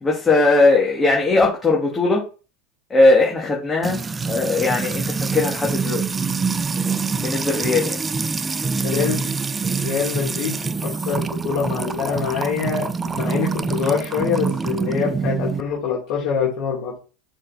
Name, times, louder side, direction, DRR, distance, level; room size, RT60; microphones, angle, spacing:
voice 1, 0.0-2.3 2.9-6.0 7.2-8.0, left 3 dB, 20° left, 2.1 m, -19 dB
Music / Water tap faucet / Trickle dribble, 3.8-15.6, right 4 dB, 20° right, 0.5 m, -25 dB
voice 2, 8.8-9.3 9.8-12.9 13.1-17.0, left 6 dB, 55° left, 2.7 m, -25 dB
6.3 x 4.2 x 4.1 m
hypercardioid pair, 85°, 0 cm